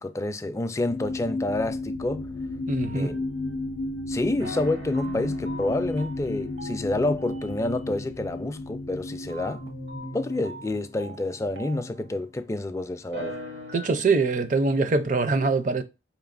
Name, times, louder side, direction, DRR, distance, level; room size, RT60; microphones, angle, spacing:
voice 1, 0.0-2.3 3.0-3.1 4.1-9.6 10.1-13.4, left 2 dB, 15° left, 0.3 m, -28 dB
sound 1, 0.9-10.9 11.5-11.6, left 2 dB, 90° left, 0.4 m, -34 dB
voice 2, 2.7-3.1 13.7-15.8, right 3 dB, 45° right, 0.5 m, -23 dB
sound 2, 2.8-4.0 4.4-12.5 13.0-13.9, right 1 dB, 65° right, 0.9 m, -42 dB
4.7 x 3.0 x 2.5 m
head